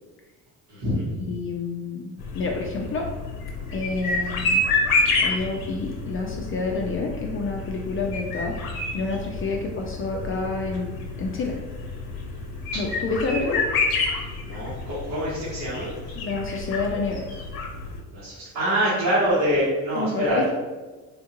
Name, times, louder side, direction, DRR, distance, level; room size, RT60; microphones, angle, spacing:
voice 1, 0.7-1.1 14.4-15.9 18.1-20.5, equal, 70° right, -11 dB, 1.3 m, -25 dB
voice 2, 1.3-3.1 3.7-4.6 5.2-8.5 8.9-11.6 12.8-13.6 16.2-17.3 20.0-20.5, left 3 dB, 40° left, 1 dB, 0.4 m, -28 dB
sound 1, 2.2-18.0, left 3 dB, 85° left, 0.7 m, -29 dB
3.5 x 2.3 x 2.9 m, 1.2 s
cardioid pair, 95°, 35 cm